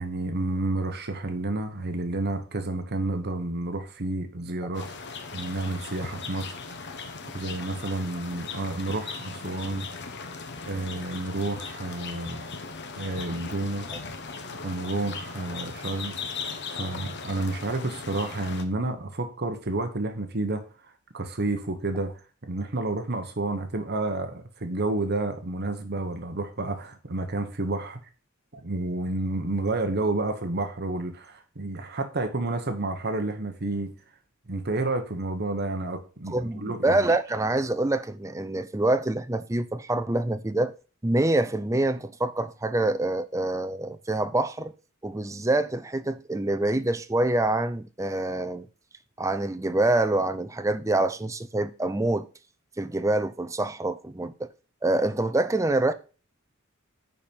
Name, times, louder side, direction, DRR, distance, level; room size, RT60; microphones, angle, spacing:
voice 1, 0.0-4.9 5.3-6.5 7.3-9.9 10.7-12.4 13.0-13.9 14.6-16.2 16.7-20.6 21.1-28.0 28.5-33.9 34.5-37.0, right 2 dB, 50° right, 1.3 m, -30 dB
sound 1, 4.7-18.6, left 4 dB, 55° left, 1.1 m, -38 dB
voice 2, 36.3-40.7 41.0-44.7 45.0-48.7 49.2-52.3 52.8-54.5 54.8-55.9, right 2 dB, 15° right, 0.6 m, -26 dB
10.0 x 4.5 x 5.3 m
head